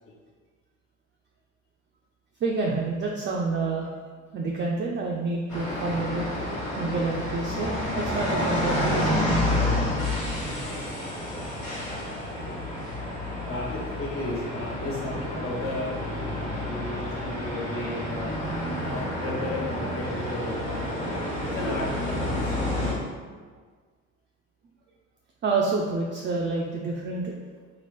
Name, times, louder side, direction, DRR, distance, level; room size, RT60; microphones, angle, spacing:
voice 1, 2.4-3.9 4.3-6.3 6.8-9.3 25.4-27.4, right 3 dB, 30° right, -2 dB, 0.4 m, -28 dB
sound 1, 5.5-22.9, left 1 dB, 70° left, 1.3 m, -29 dB
voice 2, 13.4-18.3 18.8-20.9 21.4-22.7, left 1 dB, 35° left, -3 dB, 0.8 m, -34 dB
2.9 x 2.5 x 3.1 m, 1.5 s
hypercardioid pair, 65°, 38 cm